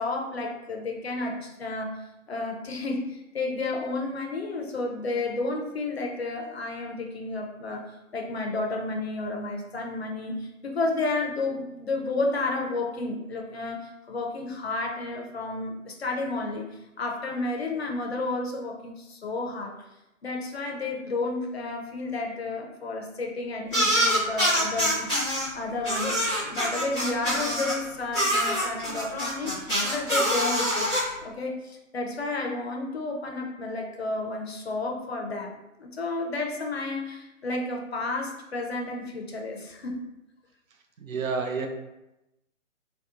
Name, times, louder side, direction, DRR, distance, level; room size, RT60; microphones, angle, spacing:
voice 1, 0.0-1.9 2.3-7.9 8.1-16.7 17.0-19.8 20.2-30.9 31.2-40.0, left 2 dB, 50° left, 1 dB, 0.5 m, -31 dB
sound 1, 23.7-25.4 25.8-27.8 28.1-31.0, equal, ahead, 0.6 m, -25 dB
voice 2, 41.0-41.7, right 4 dB, 75° right, 4 dB, 0.5 m, -29 dB
2.8 x 2.0 x 2.4 m, 0.93 s
figure-of-eight pair, 140°, 41 cm